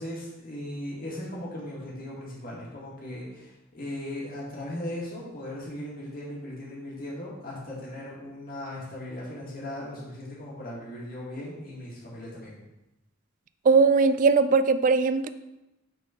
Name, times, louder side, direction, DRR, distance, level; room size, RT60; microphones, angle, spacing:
voice 1, 0.0-12.5, left 1 dB, 45° left, -6 dB, 2.1 m, -38 dB
voice 2, 13.7-15.3, right 4 dB, 40° right, 12 dB, 0.3 m, -20 dB
6.3 x 4.1 x 5.1 m, 0.97 s
head